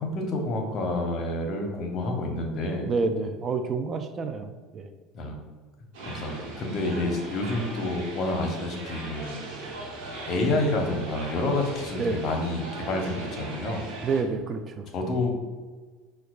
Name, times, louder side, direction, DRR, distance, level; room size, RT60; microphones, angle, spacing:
voice 1, 0.0-2.9 5.1-5.5 6.0-9.5 10.3-13.9 14.9-15.3, left 2 dB, 50° left, 3 dB, 0.7 m, -29 dB
voice 2, 2.8-4.9 7.0-7.2 12.0-12.2 14.0-14.9, right 4 dB, 35° right, 7 dB, 0.3 m, -29 dB
sound 1, 5.9-14.2, right 2 dB, 70° right, 1.0 m, -39 dB
5.6 x 2.2 x 2.3 m, 1.4 s
supercardioid pair, 95°, 0 cm